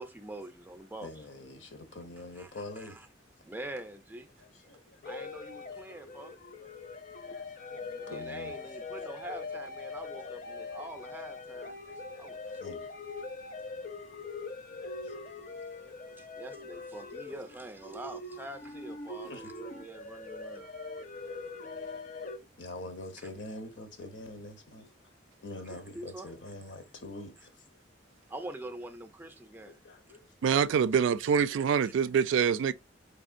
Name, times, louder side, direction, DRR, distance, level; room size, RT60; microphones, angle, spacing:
voice 1, 0.0-1.1 2.4-3.1 3.5-4.3 5.1-6.4 8.0-11.8 12.2-12.8 16.2-20.7 23.2-23.3 25.7-26.3 28.3-29.8 31.8-31.9, right 1 dB, 10° right, 0.4 m, -45 dB
voice 2, 1.0-3.1 4.4-5.1 6.6-6.7 7.2-8.6 10.0-10.1 10.5-10.6 12.1-12.3 12.6-12.9 14.7-15.6 16.5-16.8 17.3-17.4 19.2-19.5 21.3-24.9 25.4-27.6 29.6-30.2, left 2 dB, 80° left, 0.9 m, -46 dB
sound 1, 5.0-22.4, left 3 dB, 45° left, 0.6 m, -42 dB
voice 3, 30.4-32.7, right 7 dB, 90° right, 0.3 m, -25 dB
4.3 x 3.4 x 2.5 m
head